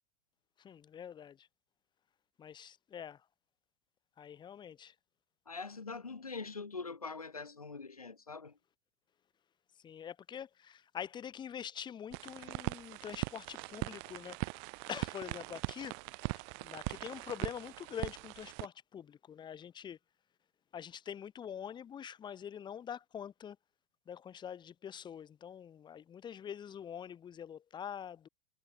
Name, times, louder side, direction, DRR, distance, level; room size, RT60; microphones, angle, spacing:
voice 1, 0.6-1.5 2.4-3.2 4.2-4.9 9.8-14.6 14.9-20.0 20.7-23.6 24.1-28.3, left 8 dB, 25° left, 2.2 m, -45 dB
voice 2, 5.5-8.6, left 4 dB, 85° left, 3.4 m, -43 dB
sound 1, 12.1-18.7, right 40 dB or more, 45° right, 0.6 m, -41 dB
figure-of-eight pair, 90°, 18 cm